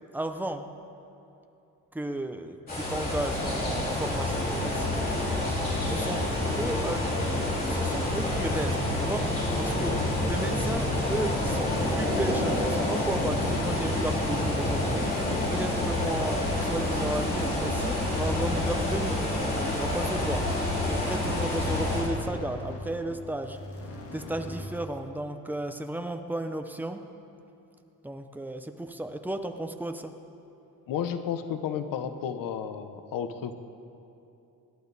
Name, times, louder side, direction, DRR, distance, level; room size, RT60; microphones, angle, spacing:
voice 1, 0.1-0.6 1.9-5.0 5.9-6.3 6.6-7.1 7.7-9.3 9.6-15.1 15.5-20.5 20.9-23.6 24.1-27.0 28.0-30.1, right 1 dB, 5° right, 6 dB, 0.6 m, -34 dB
sound 1, 2.7-22.0, left 1 dB, 25° left, 4.3 m, -28 dB
sound 2, 5.9-24.8, left 2 dB, 45° left, 1.7 m, -41 dB
voice 2, 30.9-33.5, left 8 dB, 80° left, 9 dB, 1.0 m, -32 dB
26.5 x 12.0 x 4.1 m, 2.8 s
cardioid pair, 170°, 33 cm